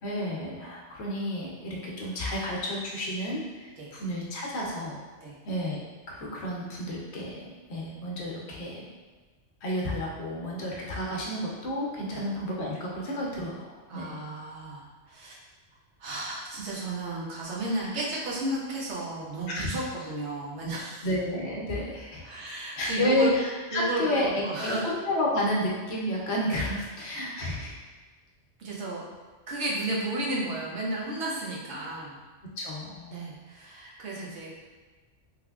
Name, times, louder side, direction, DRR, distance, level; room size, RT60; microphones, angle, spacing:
voice 1, 0.0-5.0 5.5-8.8 9.6-14.1 19.5-19.8 21.0-22.4 22.8-27.7 32.6-33.3, left 1 dB, 65° left, -3 dB, 0.9 m, -31 dB
voice 2, 13.9-15.4 16.0-21.1 22.2-23.3 23.7-24.9 28.6-29.0 29.5-32.2 33.1-34.5, right 2 dB, 70° right, -5 dB, 1.0 m, -33 dB
3.3 x 3.2 x 2.3 m, 1.3 s
omnidirectional pair, 1.2 m